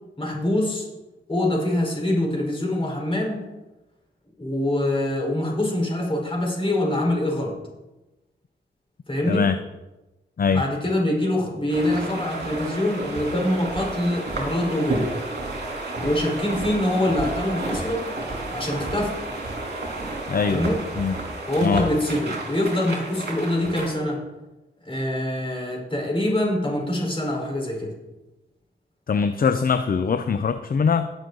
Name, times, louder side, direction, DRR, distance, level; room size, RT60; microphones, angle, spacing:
voice 1, 0.2-0.8 1.3-3.4 4.4-7.6 9.1-9.5 10.5-15.1 16.0-18.1 18.5-19.2 20.5-20.8 21.5-24.2 24.8-27.9, left 1 dB, 25° left, -1 dB, 4.3 m, -24 dB
voice 2, 9.3-9.6 10.4-10.6 20.3-20.6 21.0-21.2 21.6-21.8 29.1-31.1, left 6 dB, 45° left, 10 dB, 0.6 m, -22 dB
sound 1, 11.7-23.9, right 2 dB, 50° right, 3.2 m, -31 dB
18.0 x 6.4 x 4.0 m, 1.0 s
cardioid pair, 60°, 21 cm